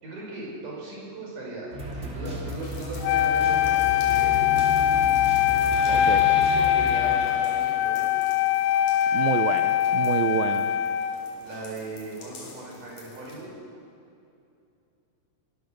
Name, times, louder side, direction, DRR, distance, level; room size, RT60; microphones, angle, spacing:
voice 1, 0.0-4.8 5.9-8.1 11.4-13.5, right 2 dB, 55° right, -3 dB, 7.2 m, -38 dB
sound 1, 1.7-7.7, equal, 20° right, 2.8 m, -34 dB
sound 2, 2.4-13.5, left 3 dB, 55° left, 4.4 m, -48 dB
Wind instrument woodwind instrument, 3.0-11.3, left 11 dB, 80° left, 1.8 m, -22 dB
voice 2, 5.9-6.2 9.1-10.7, right 12 dB, 80° right, 8 dB, 2.4 m, -28 dB
24.5 x 21.0 x 6.6 m, 2.6 s
omnidirectional pair, 4.2 m